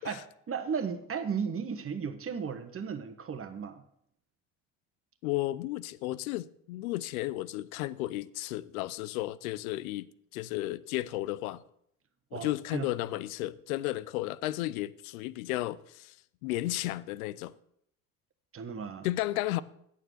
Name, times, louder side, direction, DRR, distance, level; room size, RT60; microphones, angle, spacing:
voice 1, 0.0-3.8 12.3-12.9 18.5-19.1, right 6 dB, 30° right, 1.3 m, -35 dB
voice 2, 5.2-11.6 12.3-16.1 16.4-17.5 19.0-19.6, left 16 dB, 85° left, 0.5 m, -33 dB
8.9 x 6.7 x 6.4 m
hypercardioid pair, 70°, 41 cm